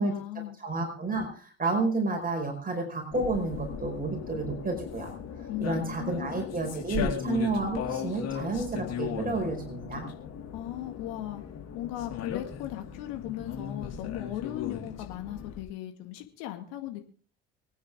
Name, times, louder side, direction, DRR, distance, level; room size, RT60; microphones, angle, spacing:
voice 1, 0.0-0.6 5.5-6.4 10.5-11.4 11.7-17.0, left 13 dB, 75° left, 6 dB, 2.2 m, -37 dB
voice 2, 0.6-5.1 5.6-10.1, right 3 dB, 30° right, 3 dB, 5.1 m, -30 dB
sound 1, 3.1-15.6, left 8 dB, 55° left, 4.4 m, -37 dB
25.0 x 9.6 x 3.7 m, 0.41 s
hypercardioid pair, 60°, 31 cm